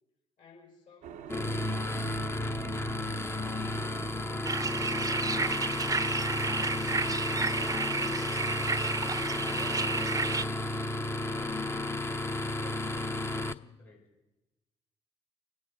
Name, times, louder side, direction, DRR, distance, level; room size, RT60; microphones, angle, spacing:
voice 1, 0.4-3.7 4.1-5.8 6.4-7.4, left 6 dB, 60° left, -1 dB, 5.7 m, -57 dB
sound 1, 1.0-11.1, right 8 dB, 65° right, 0.8 m, -52 dB
sound 2, 1.3-13.5, left 2 dB, 15° left, 0.9 m, -33 dB
sound 3, 4.4-10.4, right 4 dB, 25° right, 0.8 m, -31 dB
voice 2, 11.1-11.7 12.0-14.1, left 4 dB, 85° left, -9 dB, 4.8 m, -54 dB
28.5 x 9.7 x 4.9 m, 1.0 s
hypercardioid pair, 45°, 15 cm